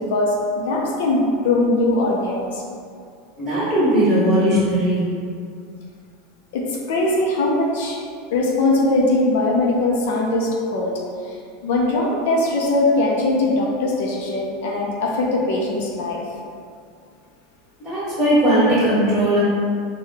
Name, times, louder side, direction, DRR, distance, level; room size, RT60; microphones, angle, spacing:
voice 1, 0.1-2.6 6.5-8.0 8.3-10.9 11.3-11.4 11.6-16.2, left 2 dB, 70° left, -2 dB, 0.6 m, -21 dB
voice 2, 3.4-5.0 17.8-19.4, right 1 dB, 5° right, -14 dB, 1.5 m, -18 dB
4.7 x 2.3 x 3.3 m, 2.3 s
supercardioid pair, 170°, 0 cm